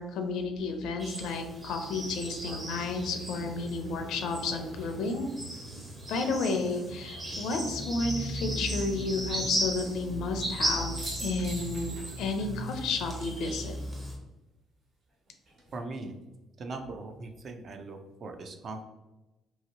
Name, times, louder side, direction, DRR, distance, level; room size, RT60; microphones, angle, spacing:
voice 1, 0.0-5.3 6.1-13.8, left 3 dB, 75° left, 5 dB, 0.5 m, -32 dB
sound 1, 0.6-0.7 2.0-5.3 7.1-7.7 10.5-10.7 11.0-12.5 12.8-12.9 15.3-15.8, right 2 dB, 60° right, 1.3 m, -46 dB
sound 2, 1.0-14.2, right 1 dB, 20° right, 0.8 m, -36 dB
voice 2, 15.7-16.1 16.6-18.8, right 3 dB, 45° right, 5 dB, 0.4 m, -40 dB
2.8 x 2.8 x 2.8 m, 1.0 s
cardioid pair, 105°, 0 cm